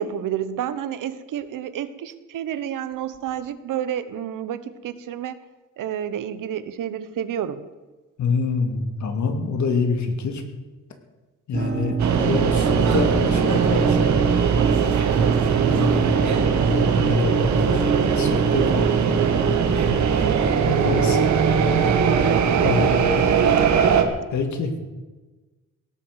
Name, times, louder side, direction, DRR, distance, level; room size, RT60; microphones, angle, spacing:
voice 1, 0.0-5.4 5.8-7.6 22.0-23.1, right 9 dB, 90° right, 13 dB, 1.2 m, -29 dB
voice 2, 8.2-10.4 11.5-14.3 15.7-20.0 20.6-21.2 22.6-23.0 24.3-24.7, left 4 dB, 65° left, 6 dB, 2.5 m, -27 dB
sound 1, 11.5-19.5, right 4 dB, 40° right, 1.3 m, -27 dB
sound 2, 12.0-24.0, right 6 dB, 65° right, 1.8 m, -20 dB
17.5 x 8.8 x 8.2 m, 1.2 s
cardioid pair, 155°, 31 cm